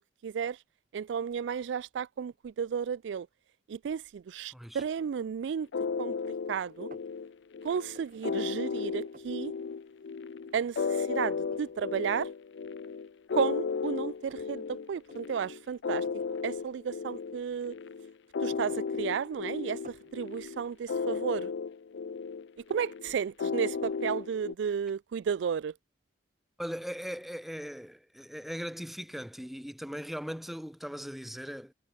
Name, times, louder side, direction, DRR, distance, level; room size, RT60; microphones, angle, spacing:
voice 1, 0.2-0.6 0.9-3.3 3.7-5.7 6.0-6.9 7.6-9.5 10.5-12.3 13.3-16.0 16.4-17.7 18.4-21.5 22.7-25.7, right 7 dB, 75° right, 0.3 m, -33 dB
voice 2, 4.5-4.8 26.6-31.7, equal, ahead, 0.4 m, -39 dB
sound 1, 4.8-5.1 5.6-6.3 6.6-7.1 7.9-8.3 8.6-8.7 8.9-9.5 9.9-10.0 10.5-11.0 11.5-11.8 12.6-12.7 13.2-14.6 15.0-15.2 16.0-16.3 17.3-18.0 18.3-19.4 19.8-20.2, right 1 dB, 45° right, 2.4 m, -54 dB
sound 2, 5.7-24.5, left 5 dB, 75° left, 0.4 m, -35 dB
head